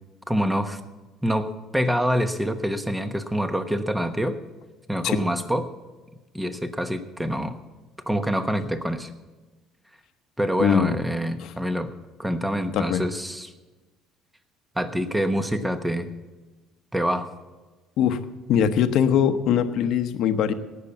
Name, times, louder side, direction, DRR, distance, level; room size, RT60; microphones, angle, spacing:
voice 1, 0.3-0.8 1.2-4.4 4.9-5.7 6.3-7.6 8.1-9.1 10.4-11.9 12.2-13.5 14.7-16.1 16.9-17.3, equal, 5° right, 9 dB, 1.1 m, -26 dB
voice 2, 10.6-10.9 11.4-11.5 12.7-13.0 18.0-18.2 18.5-20.5, left 8 dB, 65° left, 9 dB, 0.9 m, -21 dB
18.0 x 6.8 x 7.1 m, 1.2 s
cardioid pair, 105°, 0 cm